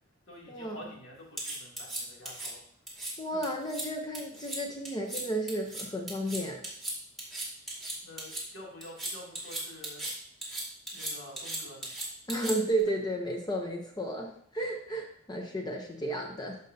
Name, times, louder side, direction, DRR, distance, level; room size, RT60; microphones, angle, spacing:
voice 1, 0.3-2.6 3.3-3.4 8.0-10.1 10.9-11.9, left 1 dB, 70° left, -4 dB, 2.6 m, -48 dB
sound 1, 1.4-2.5 2.9-3.1 3.4-3.9 4.1-4.6 4.9-5.2 5.5-8.4 8.8-10.1 10.4-12.8, right 2 dB, ahead, 2.3 m, -37 dB
voice 2, 3.2-6.6 12.3-16.6, right 1 dB, 20° left, 1 dB, 0.6 m, -33 dB
13.5 x 5.3 x 2.7 m, 0.65 s
head